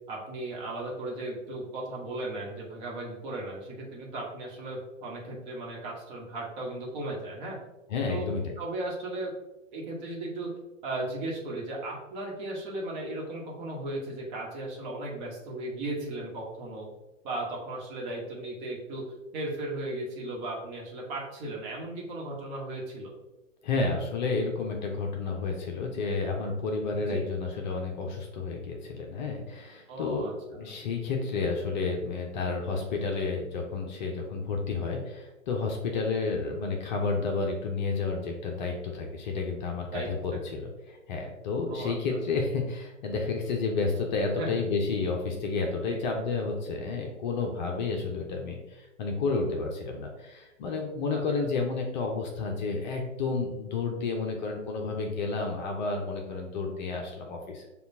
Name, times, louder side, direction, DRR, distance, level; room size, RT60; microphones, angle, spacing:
voice 1, 0.1-7.6 8.1-8.3 8.6-9.3 9.7-10.5 10.8-16.9 17.2-19.0 19.3-23.1 27.0-27.2 29.9-30.7 39.9-40.1 41.7-41.9 44.4-44.6 45.8-46.0 51.1-51.2, right 2 dB, 35° right, -2 dB, 1.2 m, -36 dB
voice 2, 7.9-8.6 23.6-57.7, left 4 dB, 35° left, 1 dB, 0.6 m, -31 dB
6.7 x 2.4 x 2.6 m, 1.1 s
figure-of-eight pair, 120°, 39 cm